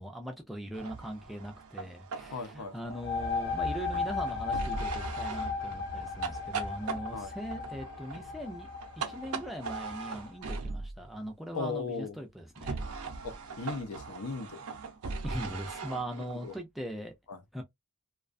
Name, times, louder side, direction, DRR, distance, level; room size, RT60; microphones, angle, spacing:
voice 1, 0.0-8.7 9.0-12.8 15.2-17.1 17.5-17.6, equal, ahead, 0.4 m, -40 dB
sound 1, 0.7-11.0 12.5-16.6, right 4 dB, 85° right, 0.7 m, -40 dB
voice 2, 2.3-2.7 7.1-7.3 11.5-12.1 13.2-14.6 16.3-16.5 17.3-17.4, left 4 dB, 85° left, 0.6 m, -37 dB
sound 2, 2.8-10.3, left 4 dB, 45° left, 0.6 m, -36 dB
2.4 x 2.3 x 2.4 m
head